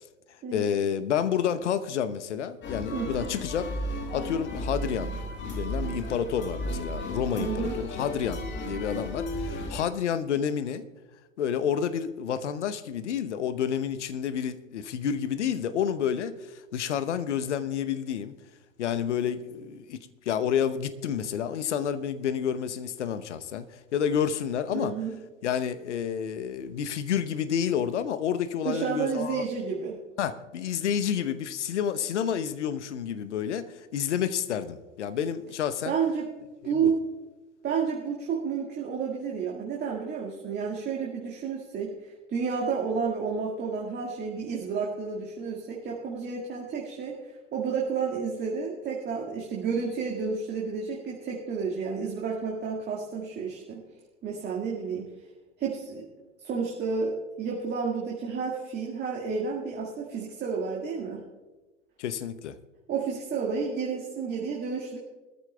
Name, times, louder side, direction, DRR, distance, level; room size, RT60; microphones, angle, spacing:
voice 1, 0.5-3.7 4.1-5.1 5.4-10.8 11.4-18.3 18.8-20.0 20.2-24.9 25.4-29.4 30.2-35.9 36.7-36.9 62.0-62.6, left 8 dB, 65° left, 12 dB, 1.0 m, -29 dB
sound 1, 2.6-9.8, left 1 dB, 30° left, 1.9 m, -34 dB
voice 2, 2.9-3.3 7.4-7.8 24.7-25.1 28.6-30.0 35.9-36.3 36.6-37.0 37.6-41.9 42.3-47.2 47.5-53.8 54.2-55.1 55.6-56.0 56.4-61.2 62.9-65.0, right 5 dB, 25° right, -3 dB, 1.9 m, -31 dB
21.5 x 13.5 x 2.3 m, 1.2 s
figure-of-eight pair, 85°, 39 cm